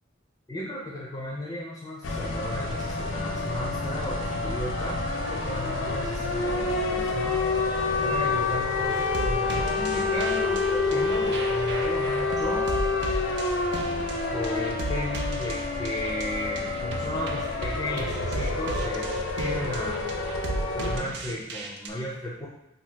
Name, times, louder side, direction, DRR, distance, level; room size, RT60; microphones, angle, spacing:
voice 1, 0.5-7.4 8.0-12.7 14.3-19.1 19.4-20.1 20.7-22.5, left 1 dB, 20° left, -4 dB, 0.4 m, -35 dB
sound 1, 2.0-21.0, left 3 dB, 80° left, 0.4 m, -28 dB
sound 2, 8.9-21.9, right 2 dB, 60° right, 0.3 m, -35 dB
2.8 x 2.1 x 3.3 m, 0.87 s
head